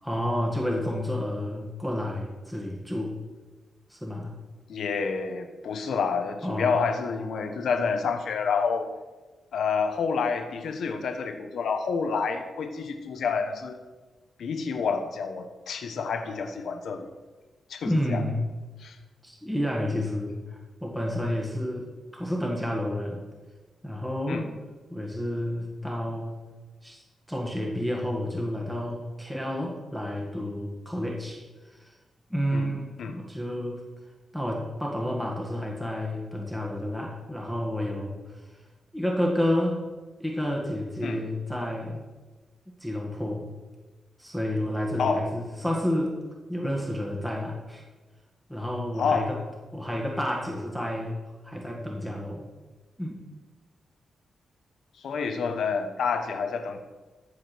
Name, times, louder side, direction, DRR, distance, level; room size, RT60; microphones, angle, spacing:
voice 1, 0.0-3.1 3.9-4.4 6.4-6.8 17.8-18.5 19.2-23.2 23.8-24.5 24.9-26.3 26.8-27.0 27.3-31.4 31.7-31.9 32.3-33.9 34.3-38.2 38.9-39.8 40.2-42.0 42.8-43.4 44.2-46.1 46.5-47.8 48.5-49.4 49.7-51.2 51.4-52.4 53.0-53.2, left 1 dB, 5° right, -2 dB, 1.7 m, -30 dB
voice 2, 4.7-8.9 9.5-13.8 14.4-17.1 17.7-18.2 18.8-19.0 24.3-24.5 32.5-32.7 33.0-33.2 41.0-41.2 45.0-45.2 49.0-49.3 55.0-56.8, left 5 dB, 80° left, 6 dB, 1.0 m, -28 dB
14.5 x 4.9 x 6.1 m, 1.2 s
cardioid pair, 110°, 0 cm